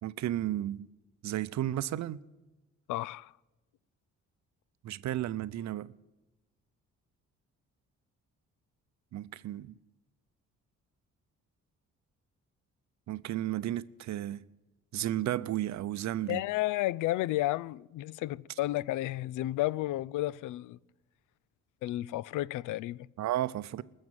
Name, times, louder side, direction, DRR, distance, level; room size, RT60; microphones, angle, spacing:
voice 1, 0.0-0.9 1.2-2.2 4.8-6.0 9.1-9.7 13.1-14.4 14.9-16.4 23.2-23.8, right 13 dB, 65° right, 0.7 m, -33 dB
voice 2, 2.9-3.3 16.3-20.8 21.8-23.1, left 16 dB, 85° left, 0.5 m, -32 dB
20.0 x 7.3 x 9.0 m
cardioid pair, 90°, 30 cm